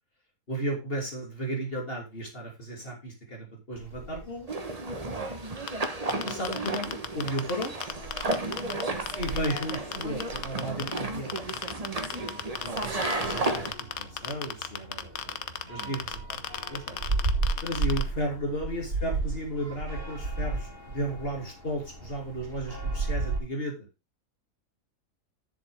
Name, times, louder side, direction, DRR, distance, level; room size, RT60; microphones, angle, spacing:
voice 1, 0.5-4.5 6.2-7.7 9.2-11.4 12.6-16.4 16.7-17.0 17.6-23.9, right 1 dB, 35° left, 1 dB, 2.9 m, -34 dB
sound 1, 3.7-23.4, right 3 dB, 50° right, 4.0 m, -36 dB
sound 2, 4.5-13.7, right 2 dB, 25° right, 1.2 m, -33 dB
sound 3, 5.7-8.8 9.1-11.0 11.3-18.0, left 9 dB, 65° left, 1.3 m, -33 dB
voice 2, 15.0-15.4 15.8-16.0, right 6 dB, 75° right, 3 dB, 1.8 m, -46 dB
10.5 x 7.1 x 3.6 m, 0.25 s
omnidirectional pair, 1.6 m